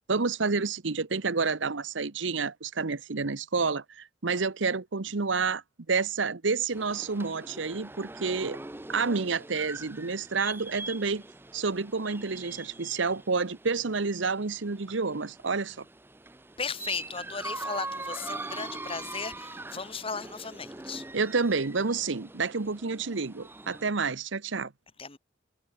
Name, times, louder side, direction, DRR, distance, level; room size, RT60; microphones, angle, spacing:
voice 1, 0.1-5.6 5.9-8.6 8.9-11.2 11.5-15.8 21.1-24.7, right 4 dB, 75° right, 1.0 m, -29 dB
sound 1, 6.7-23.9, right 2 dB, 10° right, 0.6 m, -43 dB
voice 2, 16.6-21.0 25.0-25.2, left 5 dB, 30° left, 3.1 m, -36 dB
head